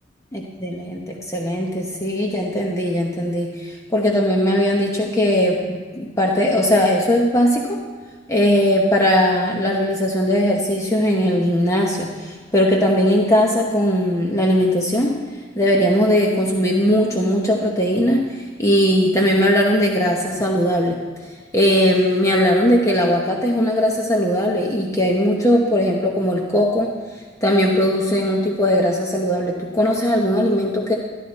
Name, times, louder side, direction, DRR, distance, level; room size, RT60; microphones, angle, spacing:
voice 1, 0.3-7.8 8.3-15.2 15.6-21.0 21.5-26.9 27.4-30.9, equal, 15° left, -1 dB, 1.0 m, -19 dB
12.5 x 12.0 x 4.2 m, 1.4 s
head